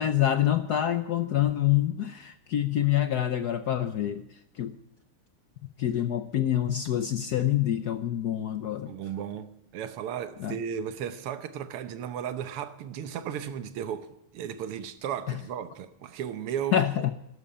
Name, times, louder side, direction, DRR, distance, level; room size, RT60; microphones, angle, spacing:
voice 1, 0.0-4.7 5.8-8.9 10.4-10.6 16.7-17.1, left 11 dB, 65° left, 1.0 m, -26 dB
voice 2, 8.9-14.1 14.3-17.1, right 8 dB, 85° right, 1.9 m, -35 dB
13.0 x 12.5 x 8.6 m
omnidirectional pair, 2.4 m